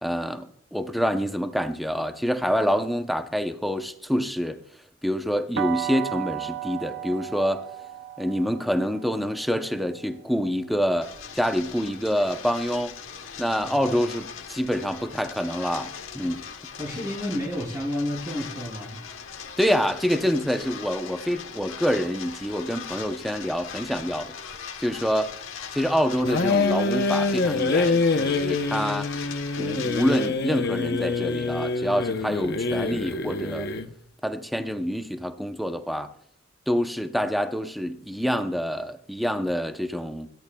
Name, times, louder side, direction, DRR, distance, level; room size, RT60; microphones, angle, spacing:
voice 1, 0.0-4.6 5.0-7.7 8.2-12.9 13.4-16.4 19.6-24.3 24.8-25.3 25.7-29.1 29.6-33.7 34.2-36.1 36.7-40.3, equal, ahead, 0.7 m, -26 dB
sound 1, 5.6-11.4, right 12 dB, 55° right, 0.6 m, -35 dB
sound 2, 11.0-30.3, left 7 dB, 75° left, 1.2 m, -40 dB
voice 2, 16.8-19.0, left 1 dB, 20° right, 2.9 m, -31 dB
sound 3, 26.2-33.9, left 3 dB, 55° left, 0.8 m, -25 dB
26.0 x 14.0 x 2.3 m
head